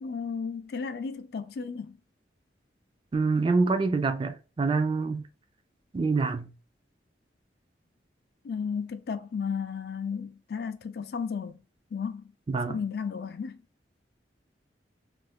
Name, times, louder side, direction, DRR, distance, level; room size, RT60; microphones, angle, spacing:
voice 1, 0.0-2.0 8.4-11.6 11.9-12.2 12.6-13.6, left 6 dB, 60° left, 0.3 m, -34 dB
voice 2, 3.1-5.2 5.9-6.5 12.5-12.8, right 4 dB, 30° right, 0.3 m, -26 dB
2.6 x 2.5 x 3.3 m
head